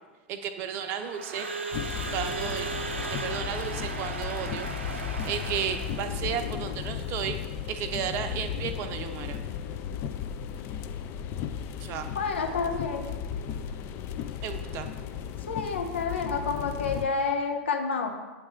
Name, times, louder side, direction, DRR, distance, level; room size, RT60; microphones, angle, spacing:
voice 1, 0.3-1.5 2.1-2.7 3.1-4.7 5.2-7.4 7.7-9.4 11.8-12.1 14.4-14.9, right 8 dB, 40° right, 7 dB, 0.6 m, -33 dB
Crowd / Alarm, 0.8-6.3, right 4 dB, 80° right, 0.6 m, -36 dB
sound 1, 1.7-17.1, left 8 dB, 40° left, 0.4 m, -35 dB
voice 2, 12.1-13.1 15.5-18.1, left 5 dB, 75° left, 4 dB, 0.7 m, -29 dB
8.1 x 3.3 x 4.5 m, 1.3 s
figure-of-eight pair, 95°, 6 cm